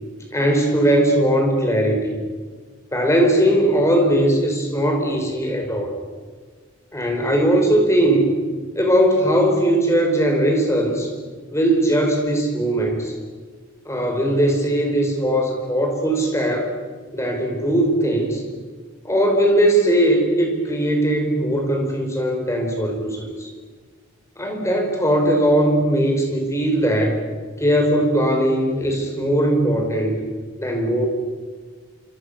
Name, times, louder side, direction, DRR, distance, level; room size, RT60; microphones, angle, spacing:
voice 1, 0.3-2.2 2.9-6.0 6.9-8.3 8.8-11.1 11.5-13.1 13.9-16.7 17.1-18.4 19.0-23.5 24.4-27.2 27.6-30.2 30.6-31.1, right 1 dB, 15° left, 2 dB, 5.3 m, -19 dB
27.0 x 26.5 x 6.9 m, 1.5 s
head